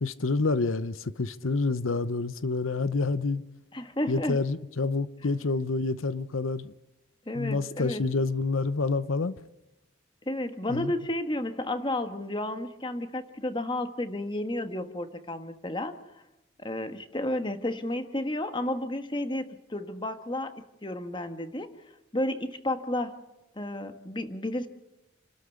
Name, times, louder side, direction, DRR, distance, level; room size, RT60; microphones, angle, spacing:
voice 1, 0.0-3.4 4.1-6.7 7.3-9.3 10.7-10.9, left 3 dB, 85° left, 0.8 m, -28 dB
voice 2, 3.7-4.4 7.3-8.0 10.3-16.0 16.6-21.7 22.1-23.2 23.6-24.7, left 1 dB, 25° left, 1.3 m, -32 dB
29.0 x 13.0 x 8.2 m
head